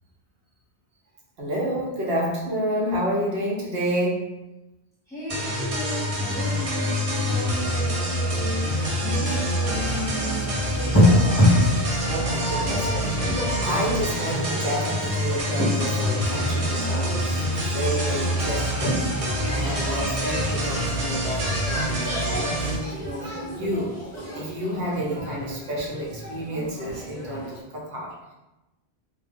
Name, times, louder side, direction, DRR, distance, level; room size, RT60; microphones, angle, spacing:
voice 1, 1.4-4.3 12.0-13.2 13.6-28.3, equal, 65° right, -3 dB, 0.9 m, -30 dB
voice 2, 5.1-11.4, equal, 5° left, -10 dB, 1.0 m, -34 dB
sound 1, 5.3-22.8, equal, 40° right, 0.5 m, -26 dB
sound 2, 8.6-27.6, left 1 dB, 20° left, 0.5 m, -28 dB
2.2 x 2.2 x 3.3 m, 1.0 s
omnidirectional pair, 1.1 m